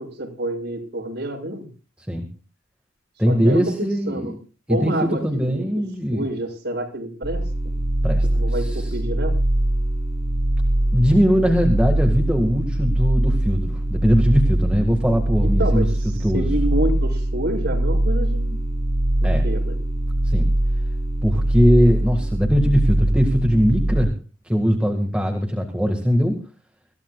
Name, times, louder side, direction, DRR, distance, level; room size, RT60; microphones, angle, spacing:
voice 1, 0.0-1.7 3.3-4.3 4.7-5.6 6.1-7.4 8.3-9.3 15.4-18.6 19.2-19.8, right 1 dB, 60° right, 3 dB, 6.6 m, -28 dB
voice 2, 3.2-4.4 4.7-6.2 8.0-9.0 10.9-15.9 16.2-16.5 19.2-19.4 20.2-20.5 21.2-24.1 24.4-26.4, equal, 5° right, 3 dB, 1.9 m, -20 dB
sound 1, 7.2-24.0, right 1 dB, 30° right, 6.7 m, -22 dB
26.0 x 15.5 x 2.4 m, 0.36 s
head